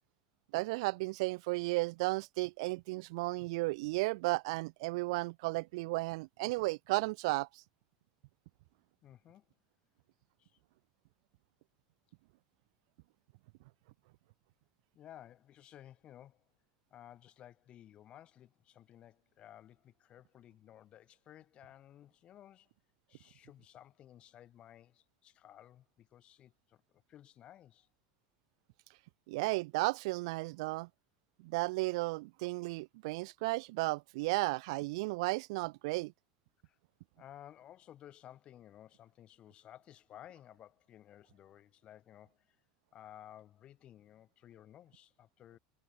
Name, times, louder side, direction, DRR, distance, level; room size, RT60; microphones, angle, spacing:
voice 1, 0.5-7.5 29.3-30.9 31.4-36.1, right 24 dB, 75° right, 1.6 m, -34 dB
voice 2, 9.0-9.5 10.4-10.5 14.9-16.4 16.9-22.7 23.1-26.8 27.1-27.9 36.6-36.8 37.2-42.6 42.9-45.6, left 11 dB, 35° left, 7.2 m, -56 dB
supercardioid pair, 145°, 3 cm